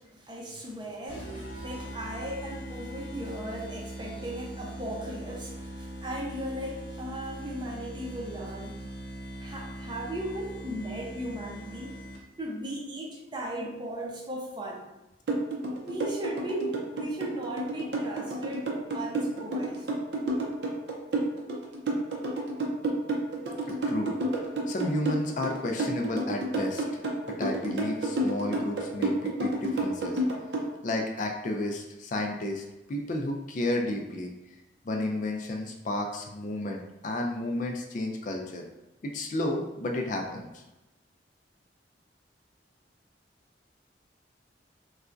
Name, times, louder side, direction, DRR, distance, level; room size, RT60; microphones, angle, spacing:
voice 1, 0.0-8.9 9.4-12.0 12.4-14.9 15.8-18.7 18.9-19.9, right 1 dB, 25° right, -2 dB, 0.6 m, -37 dB
sound 1, 1.1-12.5, right 1 dB, 65° left, 0.8 m, -41 dB
sound 2, 15.3-30.7, right 2 dB, 65° right, 0.6 m, -30 dB
voice 2, 23.7-27.0 27.3-30.2 30.8-34.3 34.8-38.6 39.0-40.6, left 1 dB, 45° left, 2 dB, 0.4 m, -32 dB
4.0 x 2.2 x 2.5 m, 0.99 s
head